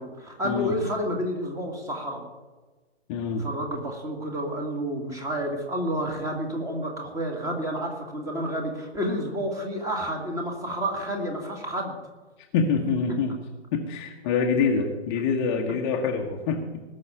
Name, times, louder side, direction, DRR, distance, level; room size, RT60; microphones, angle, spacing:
voice 1, 0.0-2.2 3.4-12.0, equal, 10° right, 2 dB, 2.1 m, -30 dB
voice 2, 3.1-3.5 12.5-13.3 13.7-16.8, left 5 dB, 25° left, 2 dB, 1.2 m, -25 dB
19.5 x 6.5 x 9.1 m, 1.3 s
figure-of-eight pair, 125°, 34 cm